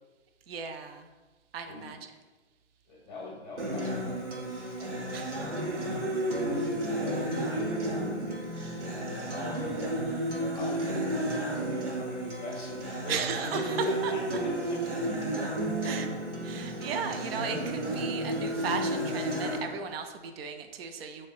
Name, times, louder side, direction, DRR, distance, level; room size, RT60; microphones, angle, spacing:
voice 1, 0.5-1.1 1.5-2.2 5.1-5.4 6.3-6.4 13.1-14.1 15.8-16.1 16.4-21.3, right 6 dB, 60° right, 6 dB, 0.5 m, -36 dB
voice 2, 2.9-5.7 6.4-8.6 9.3-9.9 10.5-13.2 14.1-14.9, left 2 dB, 10° left, -3 dB, 0.9 m, -43 dB
Acoustic guitar, 3.6-19.6, right 1 dB, 80° right, 1.0 m, -32 dB
6.4 x 2.1 x 2.4 m, 1.2 s
hypercardioid pair, 135°, 35 cm